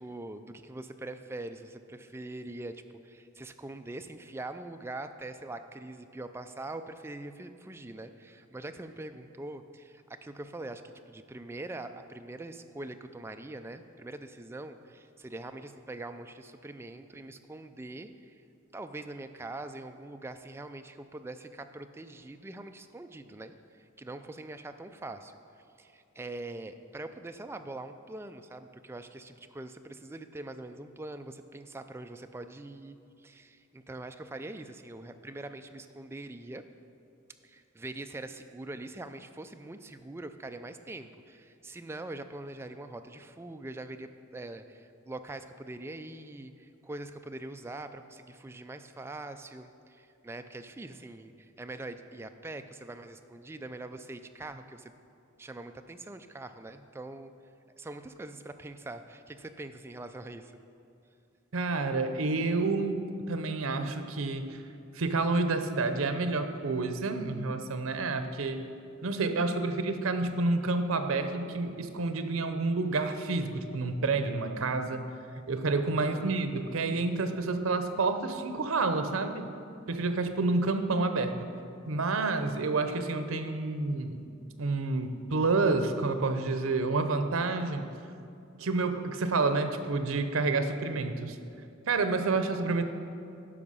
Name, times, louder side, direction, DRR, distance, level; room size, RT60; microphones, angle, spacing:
voice 1, 0.0-18.4 18.7-25.4 25.8-36.6 37.4-54.9 55.4-57.3 57.8-60.5 76.0-76.3, right 2 dB, 10° right, 8 dB, 0.3 m, -43 dB
voice 2, 61.5-64.6 64.9-68.6 69.0-75.1 75.5-79.6 79.9-81.5 81.9-84.3 84.6-87.9 88.6-91.4 91.9-92.8, right 3 dB, 85° right, 8 dB, 0.7 m, -29 dB
9.9 x 5.9 x 5.5 m, 2.5 s
head